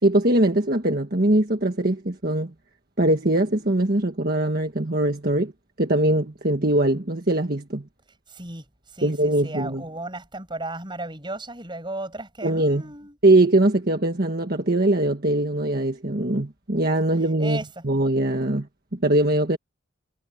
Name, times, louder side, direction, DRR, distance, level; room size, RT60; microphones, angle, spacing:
voice 1, 0.0-2.5 3.0-5.5 5.8-7.8 9.0-9.8 12.4-12.8 13.2-18.7 18.9-19.6, right 1 dB, 45° right, 1.6 m, -21 dB
voice 2, 8.3-8.7 8.9-13.2 17.4-17.8, right 2 dB, 20° right, 6.7 m, -35 dB
head